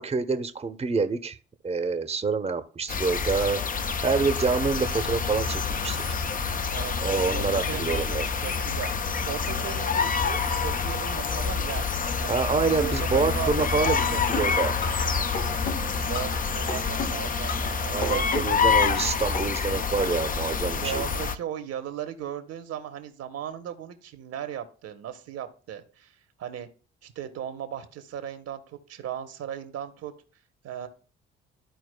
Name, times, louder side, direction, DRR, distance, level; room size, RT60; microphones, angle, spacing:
voice 1, 0.0-1.4 1.6-3.6 4.0-6.0 7.0-8.3 12.3-14.8 17.9-21.0, right 4 dB, 20° right, 8 dB, 0.8 m, -27 dB
sound 1, 2.9-21.4, left 5 dB, 30° left, 0.6 m, -27 dB
voice 2, 7.3-8.9 9.2-11.8 12.2-12.4 12.8-14.4 16.0-18.2 20.8-26.1 26.4-26.7 27.0-30.1 30.6-30.9, right 10 dB, 60° right, 9 dB, 1.0 m, -36 dB
sound 2, 14.3-15.1 15.3-16.4 16.7-17.7 18.0-19.1 19.3-19.4, left 5 dB, 80° left, 2.3 m, -33 dB
13.0 x 4.5 x 2.2 m, 0.38 s
hypercardioid pair, 45°, 29 cm